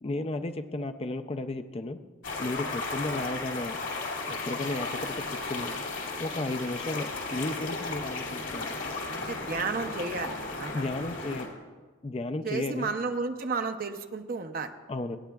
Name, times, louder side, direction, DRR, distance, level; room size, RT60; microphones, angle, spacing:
voice 1, 0.0-2.0 2.4-3.8 4.3-5.8 6.2-8.8 10.7-11.6 12.0-12.9 14.9-15.2, left 2 dB, 30° left, 9 dB, 0.4 m, -34 dB
sound 1, 2.2-11.5, left 3 dB, 70° left, 2.3 m, -35 dB
voice 2, 9.3-10.3 10.6-10.8 12.4-14.7, right 4 dB, 45° right, 6 dB, 0.6 m, -32 dB
26.0 x 9.2 x 2.3 m, 1.4 s
head